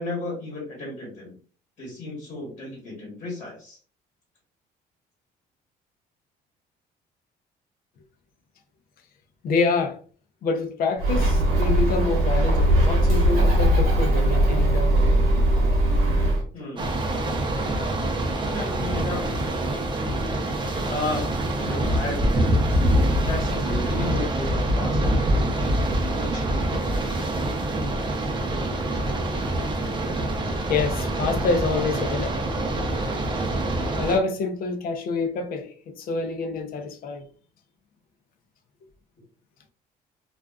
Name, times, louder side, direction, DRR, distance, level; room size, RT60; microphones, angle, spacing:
voice 1, 0.0-1.3 1.8-3.8 16.5-17.0 18.4-19.3 20.8-21.3 21.6-22.2 23.2-27.3, left 2 dB, 35° left, 1.2 m, -34 dB
voice 2, 9.4-10.0 10.4-15.0 22.9-23.0 30.7-32.4 34.0-37.3, left 4 dB, 60° left, 0.5 m, -27 dB
Bird, 11.0-16.4, right 1 dB, 65° right, 1.0 m, -20 dB
sound 1, 16.8-34.2, right 1 dB, 30° right, 0.6 m, -25 dB
2.4 x 2.3 x 2.3 m
cardioid pair, 110°, 17 cm